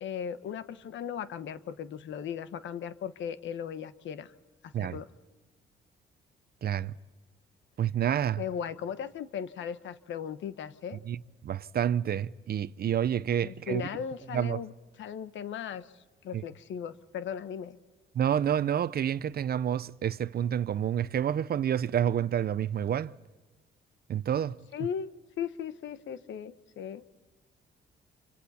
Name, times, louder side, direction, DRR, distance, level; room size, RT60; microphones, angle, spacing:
voice 1, 0.0-4.3 4.6-5.1 8.4-11.0 13.4-14.7 15.0-17.8 24.7-25.1 25.4-27.0, left 8 dB, 70° left, 1.2 m, -37 dB
voice 2, 6.6-6.9 7.8-8.4 11.1-11.2 11.4-13.8 14.3-14.6 16.3-16.4 18.1-23.1 24.1-24.5, right 9 dB, 50° right, 0.7 m, -28 dB
28.0 x 25.5 x 4.3 m
cardioid pair, 90°, 20 cm